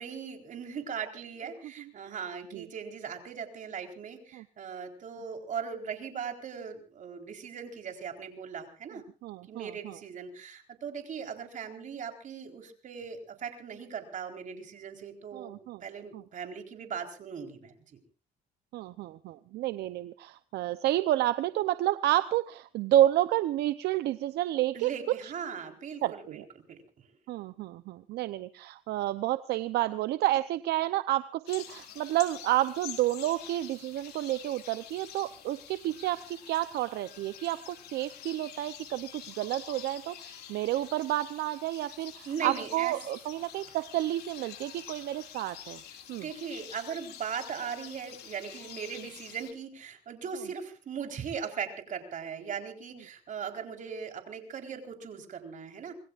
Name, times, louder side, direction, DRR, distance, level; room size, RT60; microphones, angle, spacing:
voice 1, 0.0-9.0 9.5-18.0 24.7-26.4 26.7-26.8 42.3-42.9 46.1-55.9, right 6 dB, 50° right, 4 dB, 4.2 m, -39 dB
voice 2, 9.2-10.0 15.3-15.8 16.1-16.2 18.7-25.3 26.0-26.4 27.3-45.8 46.1-46.3, right 14 dB, 75° right, 13 dB, 0.8 m, -30 dB
sound 1, 31.5-49.5, left 10 dB, 70° left, 4.2 m, -47 dB
26.5 x 21.0 x 2.5 m, 0.39 s
cardioid pair, 110°, 17 cm